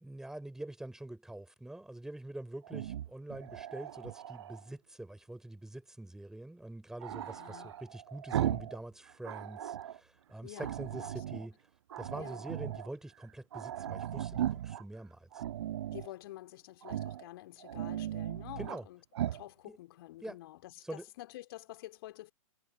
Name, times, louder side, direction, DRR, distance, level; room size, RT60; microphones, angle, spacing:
voice 1, 0.0-11.6 12.0-15.4 18.6-18.9 19.7-19.8 20.2-20.4 20.8-21.1, right 1 dB, 5° right, 3.5 m, -45 dB
Growling, 2.6-4.6 7.0-8.8 9.1-10.0 10.6-11.5 11.9-12.9 13.2-13.3 13.5-14.8 15.3-16.1 16.8-17.2 17.6-18.8 19.1-19.4, right 11 dB, 50° right, 1.4 m, -37 dB
voice 2, 7.2-7.7 10.4-11.4 12.2-12.4 15.9-19.0 19.3-22.3, left 16 dB, 40° left, 2.4 m, -49 dB
figure-of-eight pair, 115°, 18 cm